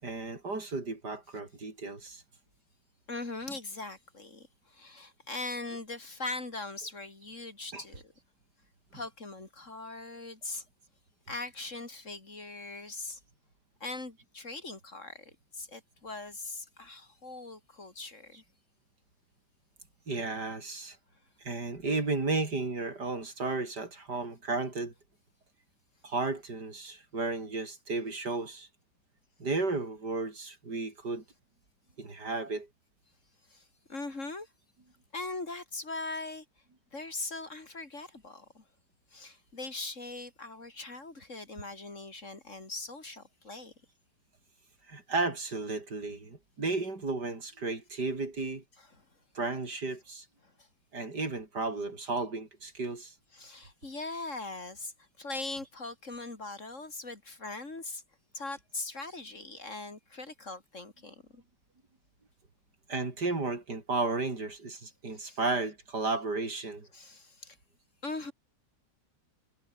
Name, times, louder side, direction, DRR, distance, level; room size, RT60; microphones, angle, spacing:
voice 1, 0.0-2.2 7.7-7.8 20.1-21.0 21.4-24.9 26.0-28.7 29.4-31.2 32.0-32.7 44.9-48.6 49.3-50.2 50.9-53.1 62.9-66.9, right 3 dB, 70° right, 5.0 m, -33 dB
voice 2, 3.1-8.1 8.9-10.6 11.3-13.2 13.8-18.4 33.5-34.5 35.1-36.5 36.9-38.6 39.1-43.7 48.8-48.9 50.4-50.7 53.3-58.0 58.3-61.4 65.1-65.4 66.9-67.6 68.0-68.3, left 3 dB, 45° left, 3.6 m, -41 dB
omnidirectional pair, 1.8 m